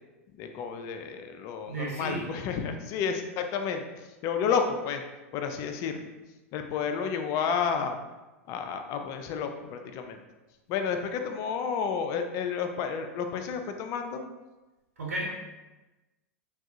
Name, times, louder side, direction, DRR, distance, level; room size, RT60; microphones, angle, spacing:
voice 1, 0.3-5.0 5.3-6.1 6.5-8.0 8.5-10.2 10.7-14.2, left 6 dB, 40° left, 6 dB, 0.3 m, -31 dB
voice 2, 1.6-2.3 15.0-15.2, right 2 dB, 80° right, -3 dB, 0.9 m, -33 dB
3.5 x 2.3 x 2.7 m, 1.1 s
figure-of-eight pair, 90°, 8 cm